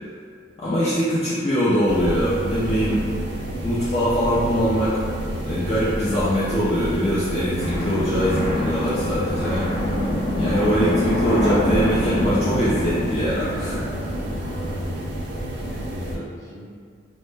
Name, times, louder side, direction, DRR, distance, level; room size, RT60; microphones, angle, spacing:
voice 1, 0.6-3.0 3.6-5.0 5.5-9.7 10.3-13.8 16.1-16.2, equal, 35° left, -10 dB, 0.4 m, -22 dB
sound 1, 1.9-16.2, right 1 dB, 70° right, 0.4 m, -30 dB
sound 2, 7.6-15.0, left 1 dB, 65° left, 0.7 m, -26 dB
voice 2, 15.3-16.7, equal, 20° left, -10 dB, 0.8 m, -41 dB
2.1 x 2.0 x 3.2 m, 2.1 s
head